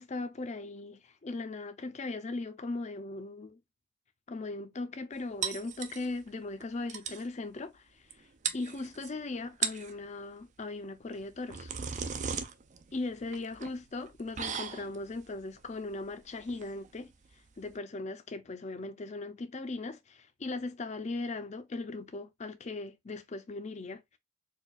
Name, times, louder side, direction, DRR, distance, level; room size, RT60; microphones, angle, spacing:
voice 1, 0.0-3.6 4.3-8.0 8.5-11.7 12.2-12.3 12.9-17.1 17.6-24.0, left 3 dB, 35° left, 0.5 m, -38 dB
sound 1, 5.4-6.3 6.6-6.7 6.9-7.3 8.1-8.2 8.4-9.1 9.5-10.0 11.1-17.8, right 7 dB, 35° right, 0.4 m, -38 dB
4.3 x 2.4 x 2.3 m
head